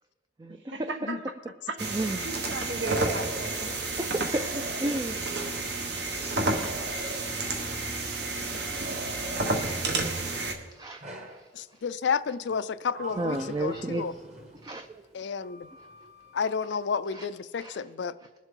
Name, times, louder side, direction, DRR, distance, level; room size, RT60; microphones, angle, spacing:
voice 1, 0.5-1.2 1.7-1.8 2.2-3.7 8.4-8.7, right 3 dB, 85° right, 1.3 m, -36 dB
sound 1, 1.8-10.5, right 2 dB, 65° right, 1.3 m, -30 dB
voice 2, 1.9-2.3 4.0-5.2 10.7-11.4 13.2-14.1 14.6-15.0 17.1-17.2 17.6-17.8, right 2 dB, 20° right, 0.3 m, -32 dB
Sliding door, 11.0-11.5 12.5-14.9 15.4-16.8, right 1 dB, 40° right, 1.4 m, -45 dB
voice 3, 11.5-14.1 15.1-15.7 16.3-18.2, left 6 dB, 75° left, 0.4 m, -31 dB
20.5 x 7.2 x 3.8 m
head